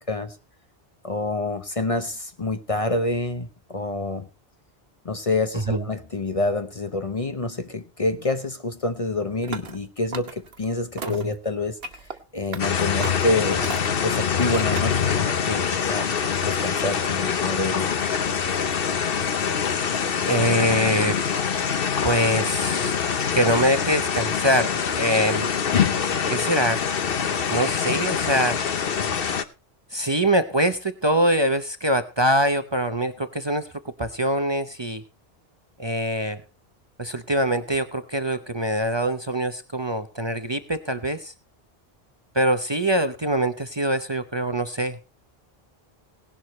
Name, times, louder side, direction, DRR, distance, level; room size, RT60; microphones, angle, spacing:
voice 1, 1.0-4.3 5.0-13.7 14.0-16.1 16.4-17.9, left 2 dB, 35° left, 9 dB, 0.9 m, -27 dB
sound 1, 9.4-9.8 10.1-10.6 11.0-11.3 11.8-12.2 12.5-12.7 13.0-13.3 13.6-14.1 14.5-15.1, right 5 dB, 70° right, 1.3 m, -35 dB
sound 2, 12.6-29.4, left 7 dB, 65° left, 1.1 m, -24 dB
voice 2, 20.3-21.2 22.0-22.9 23.3-25.5 26.3-26.9 27.5-28.6 29.9-33.7 34.0-35.0 35.8-36.4 37.0-41.3 42.3-45.0, right 1 dB, 30° right, 9 dB, 0.8 m, -23 dB
18.0 x 11.0 x 3.1 m, 0.31 s
omnidirectional pair, 1.0 m